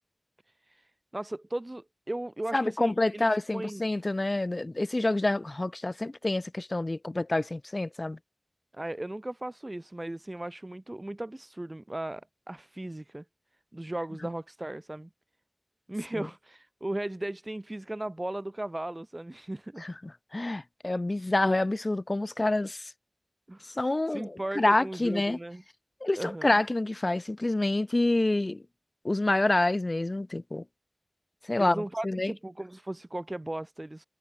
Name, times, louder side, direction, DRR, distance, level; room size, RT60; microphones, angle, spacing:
voice 1, 0.7-3.2 3.5-3.8 8.7-13.2 13.7-15.1 15.9-19.8 23.5-23.8 24.1-25.6 26.2-26.5 31.6-34.0, right 1 dB, 35° right, 4.9 m, -37 dB
voice 2, 2.5-8.2 16.2-16.3 19.8-22.9 23.7-25.4 26.0-28.6 29.0-30.6 31.5-32.3, left 2 dB, 50° left, 0.6 m, -27 dB
wide cardioid pair, 55°, 0 cm